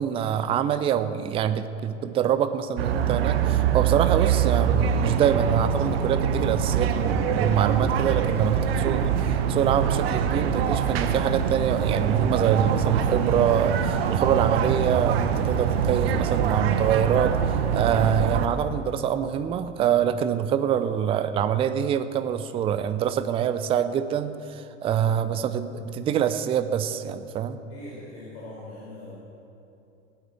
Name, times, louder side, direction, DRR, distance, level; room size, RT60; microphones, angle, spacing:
voice 1, 0.0-9.2 9.5-17.4 17.7-27.6, right 9 dB, 15° right, 11 dB, 0.5 m, -25 dB
sound 1, 2.8-18.5, right 7 dB, 50° right, 1.2 m, -24 dB
voice 2, 27.7-29.2, left 1 dB, 55° left, -6 dB, 4.5 m, -41 dB
18.0 x 9.0 x 7.8 m, 2.7 s
figure-of-eight pair, 90°, 38 cm